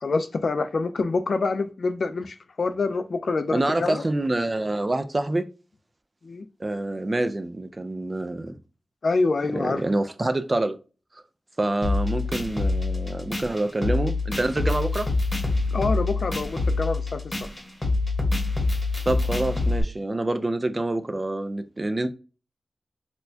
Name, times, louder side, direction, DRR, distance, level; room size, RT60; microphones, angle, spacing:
voice 1, 0.0-4.0 6.2-6.4 9.0-9.8 15.7-17.5, left 3 dB, 65° left, 0.4 m, -26 dB
voice 2, 3.5-5.5 6.6-8.6 9.5-10.8 11.6-15.1 19.1-22.1, right 2 dB, 30° right, 0.4 m, -26 dB
sound 1, 11.8-19.8, left 3 dB, 20° left, 1.0 m, -26 dB
4.2 x 2.2 x 2.6 m
wide cardioid pair, 100°, 0 cm